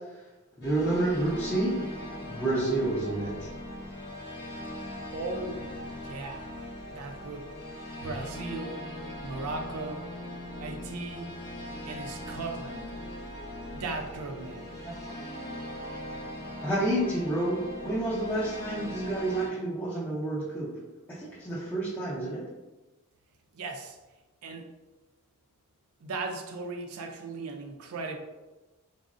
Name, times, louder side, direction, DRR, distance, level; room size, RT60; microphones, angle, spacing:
sound 1, 0.6-19.5, left 1 dB, 45° left, 0.7 m, -40 dB
voice 1, 0.6-1.8 2.2-3.5 14.8-14.9 16.6-20.7 21.1-22.4, right 1 dB, 10° left, -11 dB, 0.5 m, -29 dB
voice 2, 5.1-5.8 6.0-6.5 6.9-7.6 8.0-8.8 9.2-10.1 10.6-11.4 11.9-13.0 13.7-14.7 23.5-24.0 24.4-24.7 26.0-28.2, right 3 dB, 80° right, 4 dB, 0.4 m, -37 dB
3.6 x 2.0 x 2.4 m, 1.1 s
head